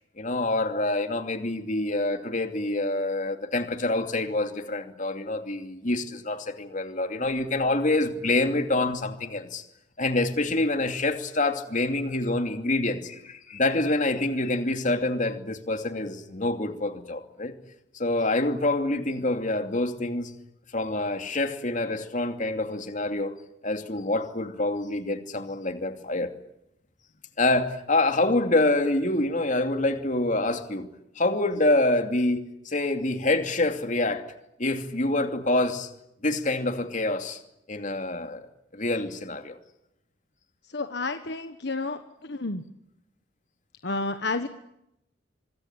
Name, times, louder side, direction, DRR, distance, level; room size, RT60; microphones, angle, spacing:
voice 1, 0.2-9.6 10.0-17.5 17.9-20.3 20.7-26.3 27.4-30.9 31.2-34.2 34.6-35.9 36.2-37.4 37.7-38.5 38.7-39.6, left 2 dB, 45° left, 2.7 m, -26 dB
voice 2, 40.6-42.6 43.8-44.5, left 3 dB, 65° left, 1.4 m, -31 dB
25.5 x 22.5 x 8.9 m
head